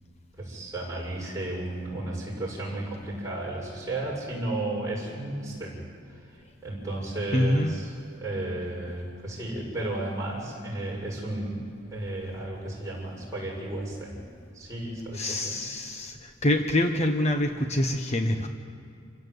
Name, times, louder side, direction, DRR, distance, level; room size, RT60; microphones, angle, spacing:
voice 1, 0.4-5.8 6.1-6.2 6.6-11.6 11.9-14.2 14.5-15.6, right 1 dB, 15° right, -4 dB, 6.9 m, -33 dB
voice 2, 7.3-7.7 15.1-18.5, left 1 dB, 35° left, 5 dB, 1.1 m, -25 dB
28.0 x 16.0 x 8.2 m, 2.5 s
head